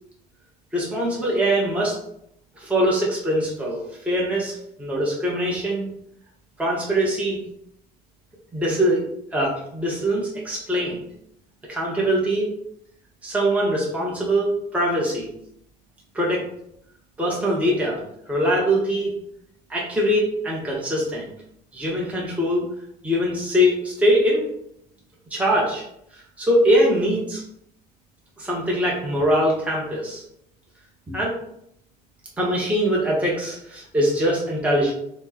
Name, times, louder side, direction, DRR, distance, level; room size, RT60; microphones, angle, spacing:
voice 1, 0.7-2.0 2.6-5.9 6.6-7.4 8.5-9.0 9.3-11.0 11.7-12.5 13.2-15.3 16.1-16.4 17.2-18.0 18.3-19.1 19.7-21.3 21.7-22.6 23.0-24.4 25.3-25.8 26.1-27.4 28.4-30.2 31.1-31.4 32.4-34.9, equal, 10° right, -4 dB, 0.8 m, -22 dB
4.1 x 2.0 x 2.8 m, 0.74 s
cardioid pair, 110°, 17 cm